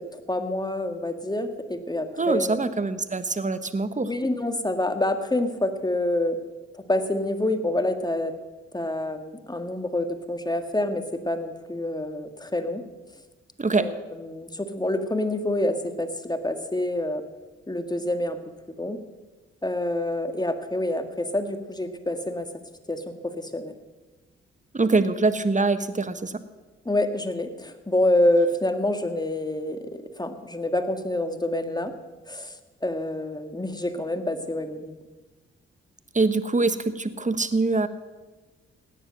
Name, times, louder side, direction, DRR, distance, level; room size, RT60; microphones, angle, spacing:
voice 1, 0.0-2.6 4.0-6.4 6.7-8.3 8.7-12.8 13.7-13.9 14.2-17.2 17.7-18.4 18.8-19.0 19.6-22.5 22.9-23.7 26.9-29.8 30.2-31.9 32.3-34.9, left 1 dB, 15° left, 7 dB, 1.9 m, -27 dB
voice 2, 2.2-4.1 13.6-13.9 24.7-26.4 36.1-37.9, right 3 dB, 25° right, 12 dB, 1.3 m, -24 dB
16.5 x 10.0 x 6.4 m, 1.2 s
hypercardioid pair, 40°, 31 cm